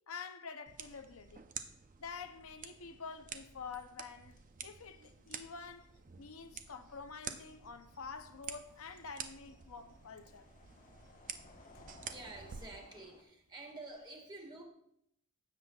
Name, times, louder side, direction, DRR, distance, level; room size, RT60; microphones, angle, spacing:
voice 1, 0.1-1.4 2.0-4.4 4.6-5.9 6.2-10.5, left 5 dB, 70° left, 0.6 m, -48 dB
sound 1, 0.7-12.7, right 7 dB, 40° right, 0.6 m, -50 dB
sound 2, 3.2-4.1 4.4-13.2, left 3 dB, 40° left, 1.2 m, -62 dB
sound 3, 3.6-14.1, right 3 dB, 80° right, 0.6 m, -61 dB
voice 2, 11.8-14.7, right 2 dB, 20° right, 1.7 m, -50 dB
16.0 x 7.5 x 2.3 m
head